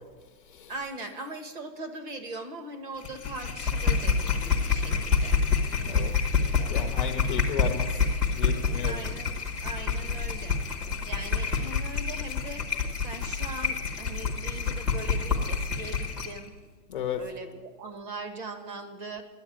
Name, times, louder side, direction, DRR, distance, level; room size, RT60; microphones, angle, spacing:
voice 1, 0.7-5.4 8.9-9.3 9.6-10.5 11.0-12.6 13.0-16.5 17.2-19.2, right 2 dB, 30° right, 6 dB, 1.5 m, -40 dB
sound 1, 3.0-16.4, left 5 dB, ahead, 0.7 m, -27 dB
voice 2, 6.7-7.9 8.3-9.0 16.9-17.2, left 8 dB, 30° left, 5 dB, 0.6 m, -33 dB
10.5 x 8.9 x 10.0 m, 1.4 s
hypercardioid pair, 165°, 49 cm